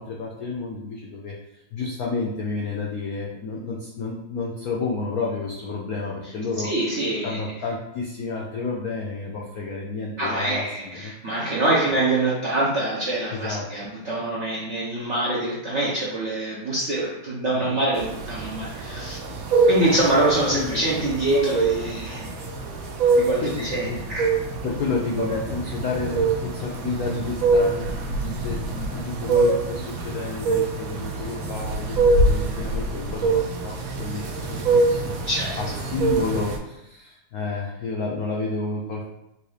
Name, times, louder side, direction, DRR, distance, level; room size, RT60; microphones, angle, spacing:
voice 1, 0.0-6.7 7.2-10.7 10.9-11.4 11.9-12.0 13.3-13.9 17.5-17.8 20.5-21.1 23.4-24.0 24.6-35.2 35.6-39.1, left 3 dB, 80° left, -2 dB, 0.8 m, -31 dB
voice 2, 6.6-7.4 10.2-19.2 19.7-22.3 23.1-24.2 35.2-35.6, right 2 dB, 55° right, -6 dB, 0.8 m, -25 dB
sound 1, 17.9-36.6, right 3 dB, 70° right, 1.6 m, -25 dB
4.0 x 2.7 x 4.8 m, 0.89 s
omnidirectional pair, 2.4 m